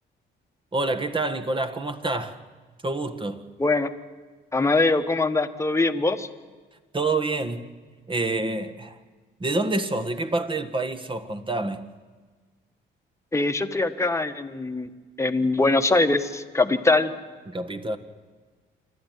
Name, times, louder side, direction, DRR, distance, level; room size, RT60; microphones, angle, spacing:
voice 1, 0.7-2.4 2.8-3.4 6.9-7.8 8.1-9.0 9.4-11.8 17.5-18.0, right 2 dB, 25° right, 1.6 m, -27 dB
voice 2, 3.6-3.9 4.5-6.3 13.3-14.9 15.2-17.1, left 2 dB, 15° left, 1.4 m, -22 dB
27.5 x 12.0 x 9.4 m
cardioid pair, 90°, 20 cm